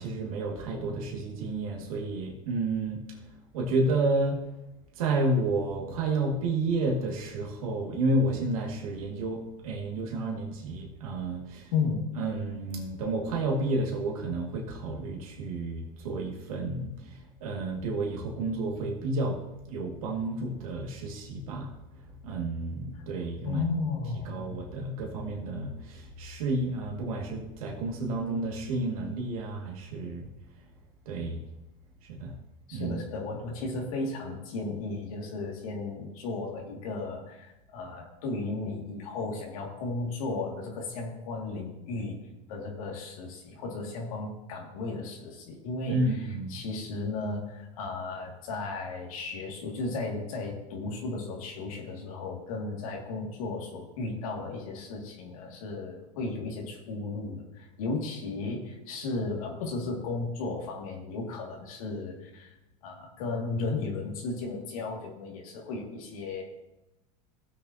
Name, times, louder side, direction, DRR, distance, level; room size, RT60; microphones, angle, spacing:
voice 1, 0.0-4.4 5.0-11.7 12.2-19.4 19.7-21.7 22.2-23.7 24.2-30.3 31.1-31.4 32.0-32.4 32.7-33.0 45.9-46.6, right 2 dB, 85° right, -1 dB, 2.2 m, -31 dB
voice 2, 11.7-12.0 23.4-24.5 32.7-42.2 42.5-46.0 46.5-62.5 62.8-66.4, left 3 dB, 85° left, -1 dB, 2.4 m, -34 dB
17.5 x 6.8 x 2.9 m, 0.93 s
supercardioid pair, 105°, 18 cm